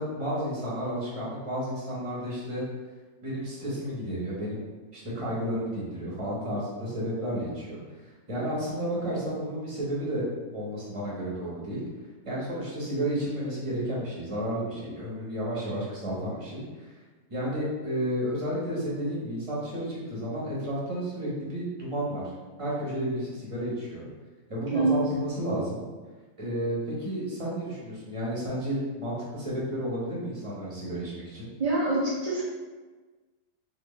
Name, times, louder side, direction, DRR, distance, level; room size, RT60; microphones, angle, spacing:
voice 1, 0.0-2.6 3.2-4.6 4.9-7.8 8.3-10.3 10.5-11.8 12.2-16.6 17.3-22.2 22.6-24.1 24.5-25.8 26.4-31.5, equal, 25° right, -7 dB, 0.9 m, -32 dB
voice 2, 24.7-25.1 31.6-32.4, right 2 dB, 65° right, -6 dB, 0.3 m, -25 dB
3.6 x 2.7 x 3.1 m, 1.3 s
omnidirectional pair, 1.7 m